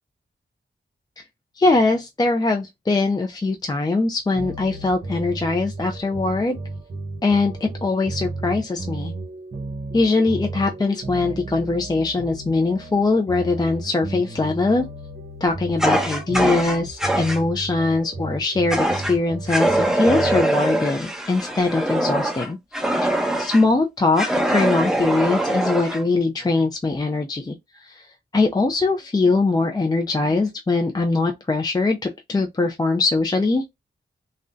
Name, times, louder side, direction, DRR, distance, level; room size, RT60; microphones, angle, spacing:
voice 1, 1.5-6.6 7.2-9.1 9.9-14.9 15.4-33.6, left 3 dB, 20° left, 0.4 m, -22 dB
sound 1, 4.3-20.4, right 2 dB, 45° right, 1.1 m, -34 dB
Fire, 15.8-17.4 18.7-19.2 19.5-23.6 24.2-26.0, right 1 dB, 5° right, 0.9 m, -23 dB
3.6 x 2.1 x 2.5 m
wide cardioid pair, 80°, 19 cm